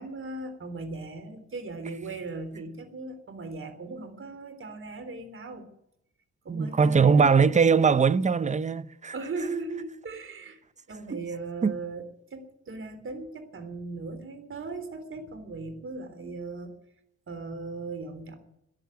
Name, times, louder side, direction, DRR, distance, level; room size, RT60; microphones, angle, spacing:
voice 1, 0.0-5.7 6.4-7.5 9.1-10.6 10.9-12.0 12.3-16.7 17.3-18.4, right 3 dB, 45° right, 3.6 m, -38 dB
voice 2, 6.5-9.1 11.1-11.2 11.6-11.7, right 5 dB, 25° right, 0.7 m, -21 dB
14.0 x 10.5 x 9.2 m
cardioid pair, 90°, 30 cm